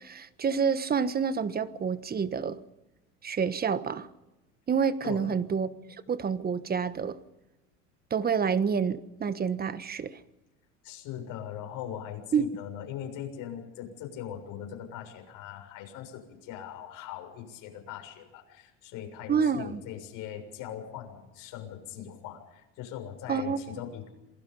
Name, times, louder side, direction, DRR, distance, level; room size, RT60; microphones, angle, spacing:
voice 1, 0.0-2.6 3.2-4.1 4.7-5.7 6.1-7.2 8.1-10.2 12.3-12.4 19.3-19.8 23.3-23.8, right 6 dB, 25° right, 1.3 m, -28 dB
voice 2, 5.0-5.4 10.8-24.1, left 10 dB, 60° left, 6.9 m, -40 dB
27.5 x 19.5 x 5.6 m
supercardioid pair, 100°, 36 cm